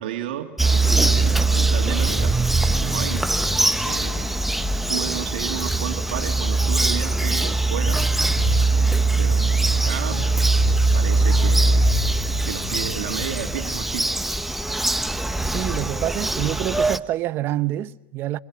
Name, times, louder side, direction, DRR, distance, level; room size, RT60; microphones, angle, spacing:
voice 1, 0.0-2.4 2.7-3.4 3.8-4.4 4.9-8.1 9.2-10.4 10.9-12.0 12.4-14.2, right 11 dB, 80° right, 2.4 m, -32 dB
Bird vocalization bird call bird song, 0.6-17.0, right 2 dB, 5° right, 1.1 m, -21 dB
sound 1, 7.8-13.5, left 7 dB, 60° left, 4.3 m, -34 dB
voice 2, 15.5-18.4, right 14 dB, 45° right, 0.9 m, -26 dB
26.0 x 25.0 x 7.5 m
supercardioid pair, 115°, 5 cm